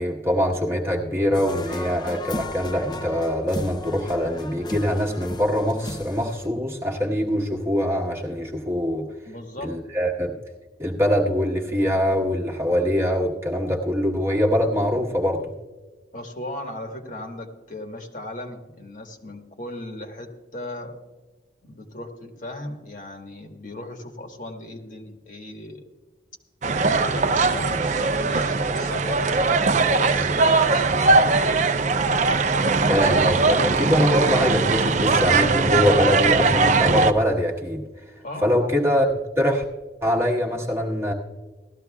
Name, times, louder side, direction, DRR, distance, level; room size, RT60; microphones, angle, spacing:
voice 1, 0.0-9.1 9.6-10.4 10.8-15.5 32.9-37.8 38.4-39.1 39.4-39.6 40.0-41.1, equal, 15° right, -1 dB, 1.2 m, -23 dB
sound 1, 1.3-6.5, left 2 dB, 25° left, 0.5 m, -35 dB
voice 2, 9.2-9.8 16.1-20.9 21.6-25.9 26.9-31.8 38.2-38.6, left 1 dB, 45° left, 3 dB, 1.3 m, -37 dB
sound 2, 26.6-37.1, right 3 dB, 40° right, 0.5 m, -20 dB
17.0 x 13.5 x 2.3 m, 1.3 s
head